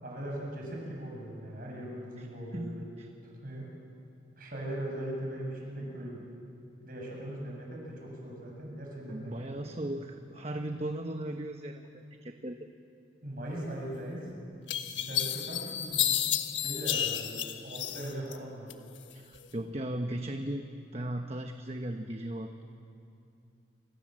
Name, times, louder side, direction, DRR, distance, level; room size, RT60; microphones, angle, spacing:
voice 1, 0.0-2.8 3.4-3.6 4.4-6.2 6.8-9.7 10.2-10.3 13.2-14.3 14.8-16.1 16.4-18.7, right 1 dB, 50° right, -1 dB, 7.3 m, -39 dB
voice 2, 2.5-3.1 9.1-12.7 15.4-15.5 19.1-20.6 20.9-22.6, right 1 dB, 35° right, 5 dB, 1.1 m, -37 dB
sound 1, 14.0-14.1 14.7-18.4 18.7-19.4, left 10 dB, 90° left, 1.5 m, -31 dB
28.5 x 26.5 x 7.7 m, 2.6 s
head